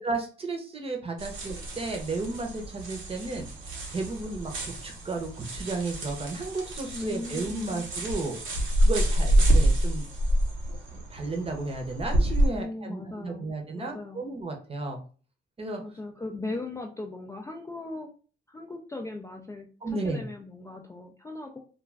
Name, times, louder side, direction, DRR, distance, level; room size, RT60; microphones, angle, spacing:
voice 1, 0.0-3.5 3.9-8.4 8.8-10.0 10.9-15.0 15.6-15.8 19.8-20.2, right 3 dB, 30° right, 3 dB, 0.8 m, -33 dB
sound 1, 1.2-12.5, right 1 dB, 85° right, 1.0 m, -27 dB
voice 2, 6.9-7.9 12.5-14.3 15.8-18.1 18.5-21.6, left 2 dB, 15° left, 2 dB, 0.4 m, -38 dB
2.4 x 2.2 x 3.2 m, 0.39 s
cardioid pair, 90°, 20 cm